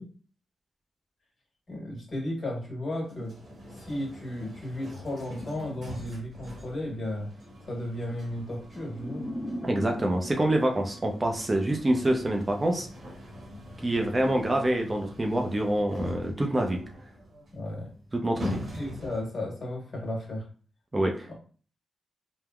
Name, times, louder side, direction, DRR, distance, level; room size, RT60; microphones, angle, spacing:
voice 1, 1.7-3.3 3.9-7.3 7.7-9.3 17.5-17.9 18.7-20.4, left 1 dB, 50° left, -2 dB, 1.4 m, -34 dB
sound 1, 3.0-19.4, left 1 dB, 65° right, 1.1 m, -43 dB
sound 2, 8.7-11.9, equal, 5° left, 1.0 m, -39 dB
voice 2, 9.6-12.9 13.8-16.8 18.1-18.6 20.9-21.4, right 1 dB, 30° right, 2 dB, 0.6 m, -26 dB
3.4 x 2.1 x 2.3 m, 0.41 s
supercardioid pair, 50°, 0 cm